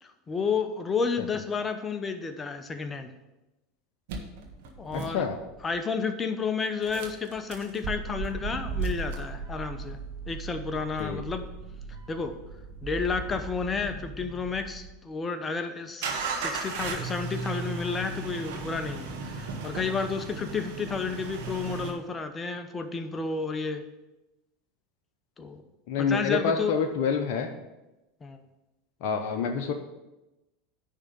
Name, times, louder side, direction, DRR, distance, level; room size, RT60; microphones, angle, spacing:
voice 1, 0.0-3.1 4.8-5.3 5.6-10.0 10.3-11.4 12.1-12.4 12.8-23.8 25.4-25.6 26.0-26.7 28.2-28.4, left 5 dB, 20° left, 8 dB, 0.9 m, -31 dB
sound 1, 4.1-5.8 6.8-15.0 16.0-21.9, right 4 dB, 60° right, 1.4 m, -36 dB
voice 2, 4.9-5.4 11.0-11.2 25.9-27.5 29.0-29.7, left 5 dB, 50° left, 3 dB, 0.8 m, -27 dB
10.0 x 3.7 x 7.0 m, 0.99 s
figure-of-eight pair, 80°, 0 cm